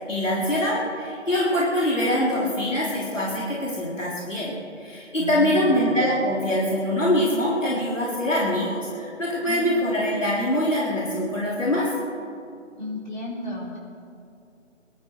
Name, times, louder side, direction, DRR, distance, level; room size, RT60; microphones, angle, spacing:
voice 1, 0.1-4.5 4.8-11.9, left 1 dB, 85° left, -6 dB, 3.9 m, -24 dB
voice 2, 5.2-5.9 9.4-9.8 12.8-13.8, left 2 dB, 40° left, -4 dB, 3.8 m, -33 dB
22.0 x 12.5 x 4.7 m, 2.4 s
figure-of-eight pair, 160°, 37 cm